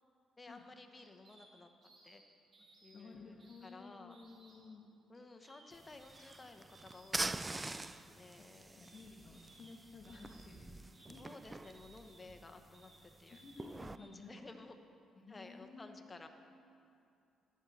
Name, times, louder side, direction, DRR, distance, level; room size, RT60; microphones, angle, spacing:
voice 1, 0.4-1.7 2.0-2.2 2.8-4.2 5.1-8.9 11.2-13.4 14.0-14.7 15.3-16.3, left 3 dB, 25° left, 6 dB, 1.0 m, -55 dB
sound 1, 0.7-1.5 1.8-2.2 2.5-3.0 3.4-3.7 4.1-4.6 5.1-5.7 6.0-6.4 6.7-7.2 7.6-7.9 8.8-9.0 9.3-9.7 10.0-10.5 10.9-11.2 11.6-12.2 12.7-13.0 13.3-13.6 13.9-14.1, right 2 dB, 50° right, 3.2 m, -63 dB
voice 2, 2.9-4.8 8.8-11.2 13.3-14.5 15.2-16.3, left 4 dB, 40° left, -1 dB, 1.4 m, -54 dB
sound 2, 5.7-14.0, right 2 dB, 20° right, 0.4 m, -45 dB
13.0 x 11.0 x 4.2 m, 2.6 s
cardioid pair, 90°, 0 cm